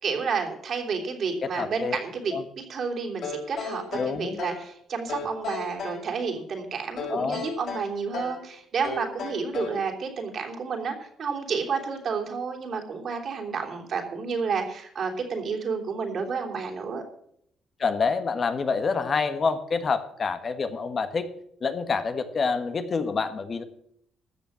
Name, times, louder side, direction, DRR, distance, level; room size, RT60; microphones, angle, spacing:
voice 1, 0.0-17.0, right 5 dB, 60° right, 2 dB, 3.4 m, -30 dB
voice 2, 1.4-2.0 2.3-2.4 3.9-4.4 7.1-7.4 17.8-21.3 21.6-23.6, left 4 dB, 45° left, 9 dB, 1.4 m, -27 dB
sound 1, 3.2-4.7 5.1-6.0 7.0-8.4 8.8-9.9, left 5 dB, 70° left, 5.8 m, -35 dB
14.0 x 7.2 x 7.4 m, 0.70 s
cardioid pair, 90°, 0 cm